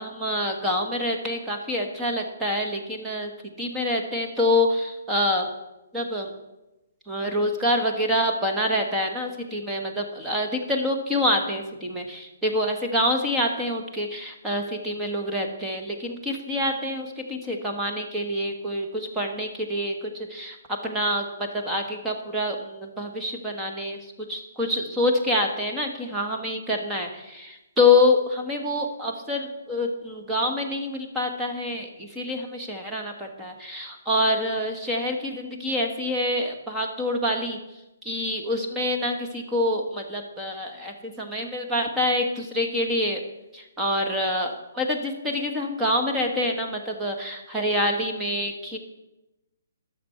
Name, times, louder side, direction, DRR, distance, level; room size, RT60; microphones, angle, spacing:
voice 1, 0.0-3.3 3.6-5.5 5.9-6.3 7.1-20.6 20.8-21.3 21.5-24.0 24.3-37.6 38.0-43.2 43.5-48.8, left 1 dB, 10° right, 1 dB, 1.1 m, -26 dB
10.0 x 6.8 x 5.6 m, 0.98 s
hypercardioid pair, 160°, 0 cm